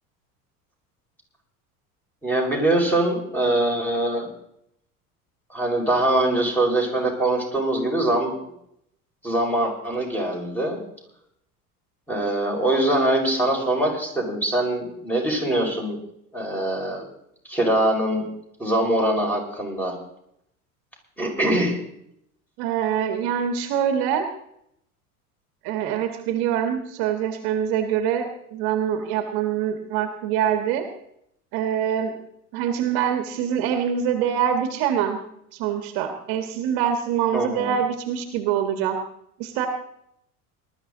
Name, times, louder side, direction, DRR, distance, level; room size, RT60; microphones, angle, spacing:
voice 1, 2.2-4.3 5.5-8.3 9.2-10.8 12.1-16.0 16.3-17.0 17.5-18.2 18.6-19.9 21.2-21.8 37.3-37.7, right 1 dB, 5° left, -1 dB, 5.5 m, -23 dB
voice 2, 22.6-24.3 25.6-30.9 31.5-32.2 32.5-35.2 35.5-39.0 39.4-39.7, right 9 dB, 55° right, 6 dB, 1.7 m, -24 dB
19.5 x 12.5 x 3.9 m, 0.75 s
hypercardioid pair, 75°, 45 cm